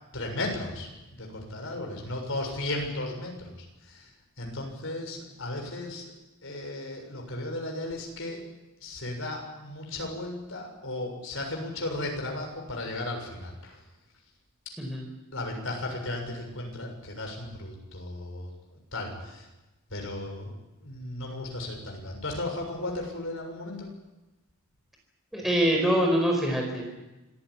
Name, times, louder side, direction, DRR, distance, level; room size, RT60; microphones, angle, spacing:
voice 1, 0.1-4.1 4.4-6.1 6.4-8.4 8.8-13.8 15.3-19.5 19.9-20.5 20.8-23.9, left 2 dB, 60° left, 2 dB, 6.9 m, -35 dB
voice 2, 25.3-26.8, equal, ahead, 0 dB, 4.8 m, -24 dB
25.5 x 15.5 x 10.0 m, 1.1 s
head